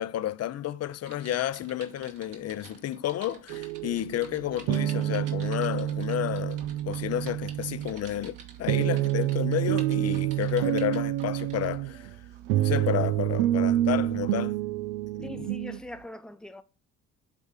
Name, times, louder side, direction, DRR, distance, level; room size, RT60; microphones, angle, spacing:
voice 1, 0.0-12.1 12.5-14.6 15.2-15.5, left 12 dB, 45° left, 0.6 m, -31 dB
Typing, 1.0-11.8 12.3-12.5, right 6 dB, 60° right, 1.9 m, -50 dB
sound 1, 3.5-15.8, right 14 dB, 80° right, 0.5 m, -28 dB
voice 2, 15.2-16.6, left 1 dB, ahead, 0.9 m, -41 dB
8.3 x 3.6 x 5.0 m
hypercardioid pair, 60°, 36 cm